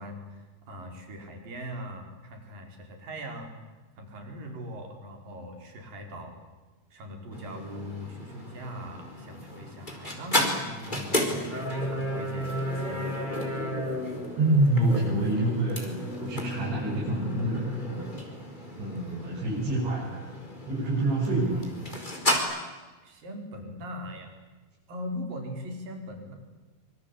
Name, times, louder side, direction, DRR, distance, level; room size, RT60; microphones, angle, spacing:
voice 1, 0.0-6.4 6.9-13.4 19.4-19.8 21.6-21.8 23.0-24.3 24.9-26.3, equal, 50° right, 4 dB, 6.2 m, -41 dB
sound 1, 7.3-22.4, equal, 10° left, 4.2 m, -33 dB
voice 2, 14.4-18.1 18.8-20.2 20.7-21.7, right 1 dB, 85° right, -5 dB, 9.6 m, -27 dB
26.5 x 24.5 x 8.6 m, 1.2 s
omnidirectional pair, 5.1 m